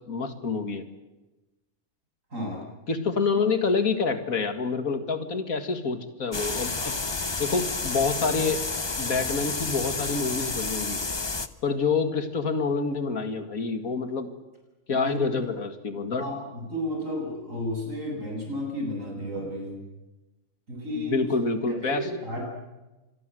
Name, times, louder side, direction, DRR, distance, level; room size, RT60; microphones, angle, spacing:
voice 1, 0.1-0.8 2.9-6.9 7.4-8.6 9.0-11.0 11.6-14.4 14.9-16.2 20.9-22.1, left 4 dB, 85° left, 8 dB, 2.5 m, -27 dB
voice 2, 2.3-2.6 14.9-15.5 16.2-19.8 20.7-21.3 21.7-22.5, left 1 dB, 65° right, 1 dB, 8.4 m, -32 dB
sound 1, 6.3-11.5, left 3 dB, 20° left, 0.8 m, -30 dB
26.0 x 22.5 x 7.8 m, 1.1 s
omnidirectional pair, 1.4 m